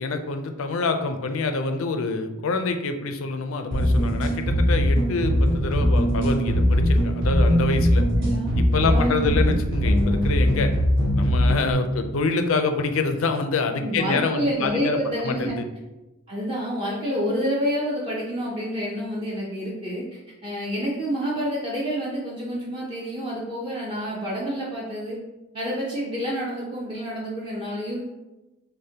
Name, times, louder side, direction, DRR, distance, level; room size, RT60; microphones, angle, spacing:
voice 1, 0.0-8.0 8.6-10.7 11.1-15.0 15.2-15.6, left 4 dB, 80° left, 7 dB, 0.4 m, -26 dB
sound 1, 3.7-11.7, equal, 60° right, 1.4 m, -21 dB
voice 2, 8.2-9.5 13.8-15.5 16.3-25.2 25.5-28.1, equal, 25° right, -5 dB, 0.6 m, -28 dB
6.4 x 2.1 x 2.8 m, 1.1 s
head